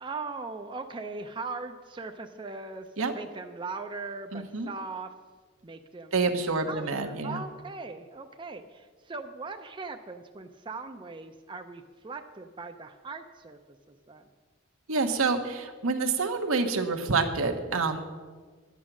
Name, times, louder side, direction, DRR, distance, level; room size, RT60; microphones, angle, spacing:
voice 1, 0.0-2.9 3.1-5.1 5.6-6.3 6.7-13.6 13.9-14.3, right 4 dB, 25° right, 6 dB, 0.5 m, -39 dB
voice 2, 4.3-4.7 6.1-7.4 14.9-18.1, right 4 dB, 85° right, 6 dB, 1.1 m, -27 dB
11.5 x 8.4 x 6.1 m, 1.5 s
head